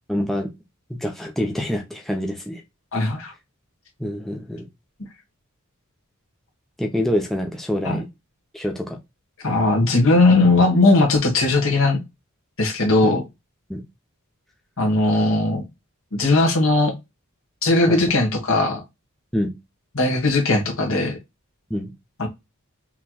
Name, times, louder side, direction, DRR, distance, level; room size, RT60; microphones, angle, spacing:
voice 1, 0.1-0.5 0.9-2.6 4.0-4.7 6.8-8.1 8.5-9.0 13.0-13.1 13.7-13.8 17.9-18.0 19.3-19.5 21.7-21.9, equal, ahead, 0.6 m, -26 dB
voice 2, 2.9-3.3 7.8-8.0 9.4-12.0 12.6-13.2 14.8-15.6 16.1-16.9 17.6-18.8 19.9-21.2 22.2-22.3, left 2 dB, 65° left, 1.7 m, -18 dB
5.7 x 3.1 x 2.3 m
head